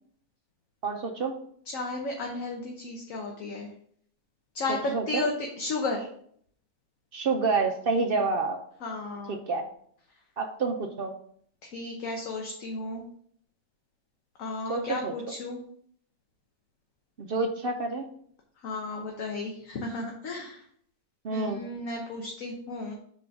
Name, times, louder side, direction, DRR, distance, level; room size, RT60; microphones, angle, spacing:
voice 1, 0.8-1.3 4.9-5.3 7.1-8.6 9.3-9.6 10.4-11.1 14.7-15.1 17.2-18.0 21.2-21.6, right 4 dB, 60° right, 4 dB, 0.6 m, -28 dB
voice 2, 1.7-3.7 4.5-4.8 5.1-6.1 8.8-9.4 11.7-13.0 14.4-15.6 18.6-20.6 21.3-22.9, left 3 dB, 60° left, 0 dB, 1.3 m, -34 dB
5.0 x 3.8 x 5.8 m, 0.62 s
omnidirectional pair, 1.7 m